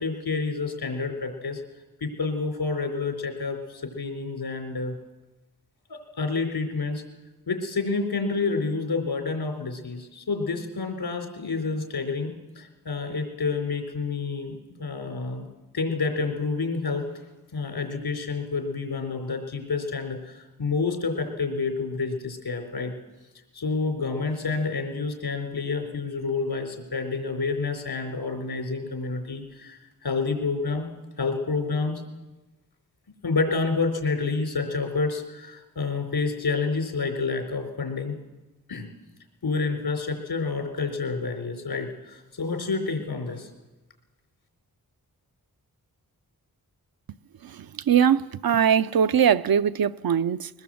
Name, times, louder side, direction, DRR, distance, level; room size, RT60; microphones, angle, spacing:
voice 1, 0.0-1.6 2.0-4.9 5.9-7.0 7.5-15.5 15.7-17.2 17.5-23.0 23.5-30.9 31.2-32.0 33.2-38.2 38.7-38.9 39.4-43.5, left 4 dB, 85° left, 4.3 m, -29 dB
voice 2, 47.4-50.5, right 8 dB, 70° right, 0.7 m, -21 dB
22.0 x 19.5 x 7.8 m
wide cardioid pair, 60°, 37 cm